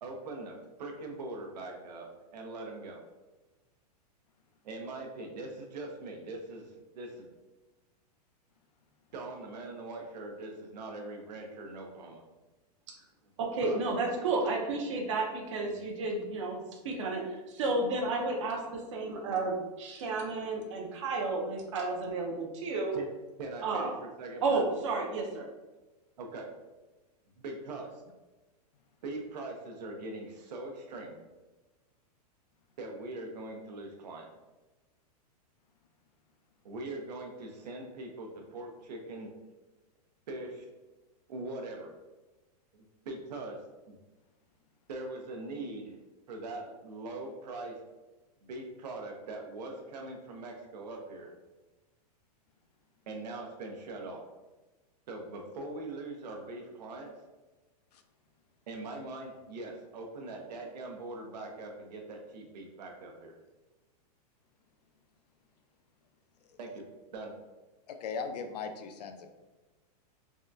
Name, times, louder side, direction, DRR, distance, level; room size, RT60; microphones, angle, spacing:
voice 1, 0.0-2.1 2.3-3.0 4.6-6.7 6.9-7.3 9.1-12.2 13.6-13.8 22.9-23.1 23.4-24.6 26.2-26.5 27.4-27.9 29.0-31.2 32.8-34.3 36.6-39.3 40.3-40.6 41.3-41.9 43.1-43.6 43.9-44.0 44.9-46.0 46.3-47.7 48.4-51.3 53.1-54.2 55.1-57.1 58.7-63.3 66.6-66.8 67.1-67.3, right 2 dB, 85° right, 2 dB, 0.7 m, -41 dB
voice 2, 13.4-22.9 23.6-23.9 24.4-25.5, right 3 dB, 50° right, 1 dB, 0.5 m, -32 dB
voice 3, 67.9-69.3, left 5 dB, 75° left, 7 dB, 0.5 m, -38 dB
3.6 x 2.2 x 2.5 m, 1.1 s
supercardioid pair, 170°, 21 cm